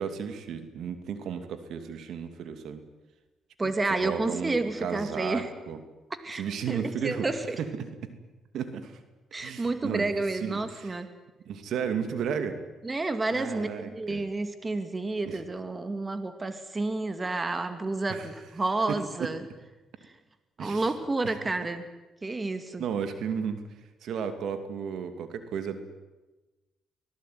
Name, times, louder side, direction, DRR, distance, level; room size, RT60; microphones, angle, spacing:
voice 1, 0.0-2.8 4.0-5.8 6.3-7.3 7.8-7.9 8.5-9.0 9.4-10.9 11.5-12.6 13.3-14.2 15.2-15.4 18.1-18.3 18.9-19.0 20.6-20.9 21.2-21.3 22.8-23.6 24.0-25.9, right 7 dB, 75° right, 9 dB, 2.7 m, -34 dB
voice 2, 3.6-5.5 6.2-6.4 6.7-7.6 9.3-11.1 12.8-19.4 20.6-21.8 22.2-22.8, right 2 dB, 25° right, 9 dB, 2.4 m, -30 dB
24.5 x 18.5 x 9.5 m, 1.1 s
cardioid pair, 90°, 0 cm